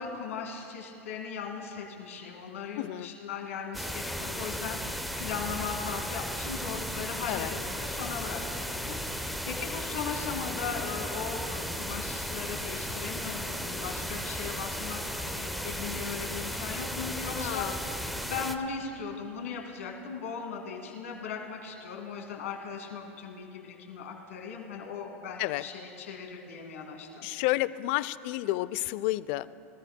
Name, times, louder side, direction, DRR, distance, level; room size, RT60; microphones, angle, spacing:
voice 1, 0.0-18.0 18.3-27.3, left 5 dB, 85° left, 0 dB, 2.2 m, -38 dB
voice 2, 2.8-3.1 7.3-7.5 17.3-17.8 25.4-25.6 27.2-29.5, left 17 dB, 60° left, 17 dB, 0.4 m, -30 dB
sound 1, 3.7-18.6, equal, ahead, 0.8 m, -35 dB
23.5 x 14.0 x 2.2 m, 2.8 s
hypercardioid pair, 100°, 7 cm